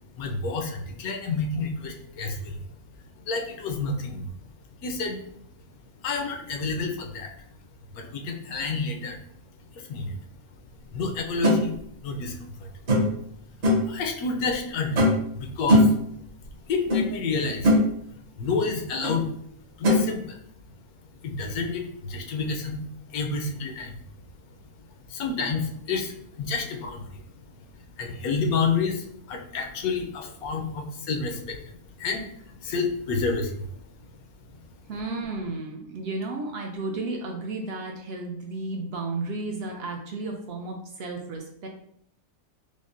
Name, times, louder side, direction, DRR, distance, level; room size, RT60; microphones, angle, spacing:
voice 1, 0.2-2.6 3.2-4.3 4.8-5.2 6.0-7.3 7.9-9.2 9.7-10.2 10.9-11.7 12.0-12.7 13.8-15.0 15.3-15.9 16.6-17.8 18.4-19.3 19.8-20.4 21.2-22.8 23.1-23.9 25.1-27.2 28.0-32.3 32.6-33.7, left 4 dB, 80° left, 4 dB, 1.1 m, -29 dB
sound 1, 11.4-11.6 12.9-13.2 13.6-13.9 15.0-15.3 15.7-16.0 16.9-17.0 17.4-17.8 19.0-19.2 19.8-20.0, left 1 dB, 50° right, 1.1 m, -19 dB
voice 2, 34.9-41.7, right 3 dB, 70° right, 2 dB, 0.6 m, -33 dB
5.1 x 2.0 x 2.5 m, 0.68 s
omnidirectional pair, 1.5 m